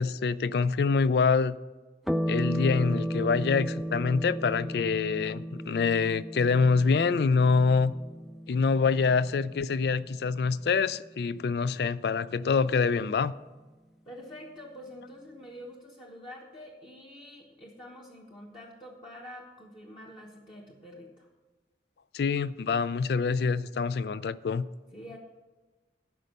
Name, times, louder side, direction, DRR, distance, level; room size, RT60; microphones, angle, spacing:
voice 1, 0.0-1.6 2.3-7.9 8.5-13.3 22.1-24.7, left 5 dB, 65° left, 0.3 m, -25 dB
sound 1, 2.1-10.9, equal, ahead, 0.5 m, -35 dB
voice 2, 14.0-21.3 24.9-25.2, equal, 30° left, 1.0 m, -46 dB
12.5 x 5.3 x 6.6 m
head